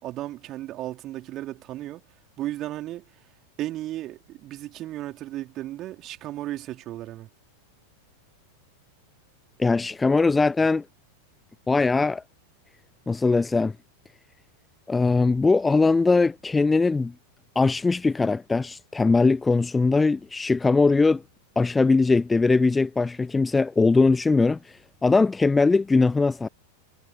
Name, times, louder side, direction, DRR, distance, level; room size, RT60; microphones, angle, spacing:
voice 1, 0.0-2.0 2.4-3.0 3.6-7.3, right 14 dB, 35° right, 3.8 m, -34 dB
voice 2, 9.6-10.8 11.7-12.2 13.1-13.7 14.9-17.1 17.6-21.2 21.6-24.6 25.0-26.5, left 3 dB, 10° left, 0.3 m, -20 dB
figure-of-eight pair, 90°, 0 cm